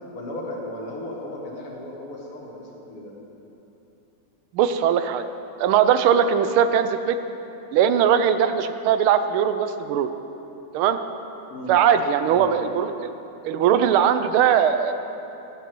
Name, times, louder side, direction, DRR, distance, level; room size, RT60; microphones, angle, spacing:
voice 1, 0.1-3.1 11.5-11.7 12.3-12.5, left 1 dB, 85° left, -2 dB, 2.6 m, -35 dB
voice 2, 4.5-5.2 5.6-7.2 7.7-10.1 10.7-11.0 11.7-13.1 13.4-14.9, right 8 dB, 80° right, 10 dB, 1.4 m, -20 dB
11.5 x 8.4 x 6.1 m, 3.0 s
omnidirectional pair, 2.4 m